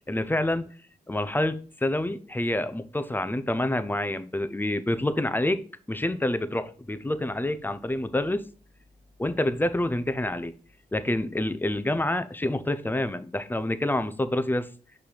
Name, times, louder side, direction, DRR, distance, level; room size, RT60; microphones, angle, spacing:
voice 1, 0.1-0.7 1.1-5.6 5.9-8.4 9.2-10.5 10.9-14.7, left 1 dB, 10° left, 0.6 m, -27 dB
5.8 x 3.4 x 4.9 m
cardioid pair, 80°, 16 cm